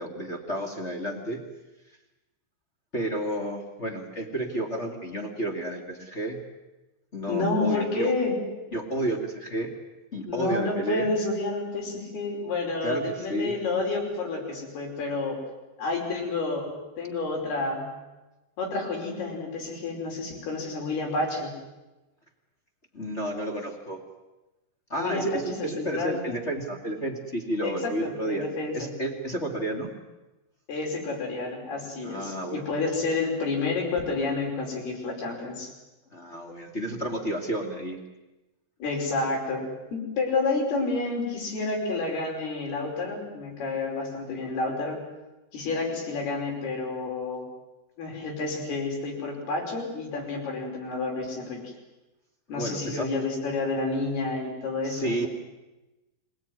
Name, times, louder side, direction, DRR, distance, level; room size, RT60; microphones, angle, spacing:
voice 1, 0.0-1.4 2.9-6.4 7.1-8.1 8.7-9.7 10.1-11.1 12.8-13.5 22.9-24.0 24.9-28.4 28.7-29.9 32.0-32.9 36.1-38.0 52.5-53.1 54.8-55.3, right 1 dB, 25° left, 1 dB, 1.9 m, -31 dB
voice 2, 7.3-8.4 10.3-15.4 15.8-16.7 17.0-17.9 18.6-21.5 25.0-26.2 27.6-28.9 30.7-35.7 38.8-39.7 39.9-45.0 45.5-47.4 48.0-51.7 52.5-55.3, left 3 dB, 75° left, 0 dB, 7.2 m, -29 dB
26.0 x 18.5 x 9.5 m, 1.1 s
omnidirectional pair, 4.5 m